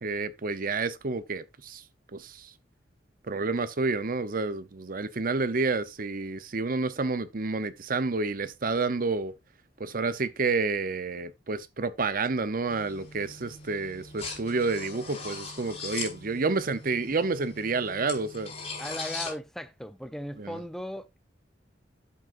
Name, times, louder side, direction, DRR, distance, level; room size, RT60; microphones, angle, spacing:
voice 1, 0.0-1.8 2.1-2.5 3.3-9.3 9.8-18.5 20.4-20.6, right 3 dB, 50° right, 0.8 m, -29 dB
sound 1, 12.7-19.3, left 4 dB, 35° left, 5.1 m, -40 dB
voice 2, 18.8-21.2, equal, ahead, 0.5 m, -37 dB
11.5 x 7.8 x 2.6 m
head